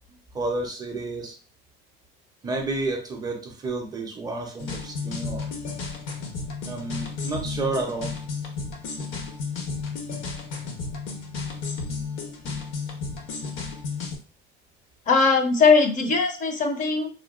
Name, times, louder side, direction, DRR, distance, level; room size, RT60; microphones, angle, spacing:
voice 1, 0.3-1.4 2.4-5.6 6.6-8.1, right 2 dB, 20° right, 2 dB, 0.4 m, -30 dB
sound 1, 4.6-14.2, left 4 dB, 70° left, 0.7 m, -33 dB
voice 2, 15.1-17.1, left 4 dB, 40° left, 5 dB, 0.5 m, -20 dB
3.6 x 2.1 x 2.3 m, 0.37 s
cardioid pair, 155°, 20 cm